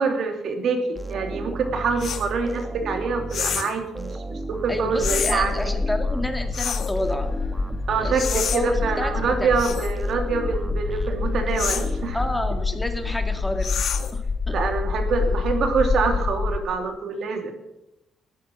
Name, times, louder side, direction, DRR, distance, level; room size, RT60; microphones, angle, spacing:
voice 1, 0.0-5.7 7.9-12.2 14.5-17.5, right 4 dB, 65° right, 5 dB, 2.7 m, -25 dB
sound 1, 0.9-13.2, right 2 dB, 15° right, 1.5 m, -34 dB
sound 2, 2.0-2.3 3.3-3.8 5.0-5.4 6.5-6.9 8.2-8.6 9.6-9.9 11.6-11.9 13.6-14.2, left 8 dB, 65° left, 1.5 m, -28 dB
voice 2, 4.7-7.3 8.0-9.5 12.1-13.8 14.1-14.6, left 1 dB, 10° left, 5 dB, 2.2 m, -29 dB
sound 3, 5.0-16.6, left 4 dB, 35° left, 1.5 m, -27 dB
13.5 x 10.0 x 7.4 m, 0.89 s
cardioid pair, 90°, 0 cm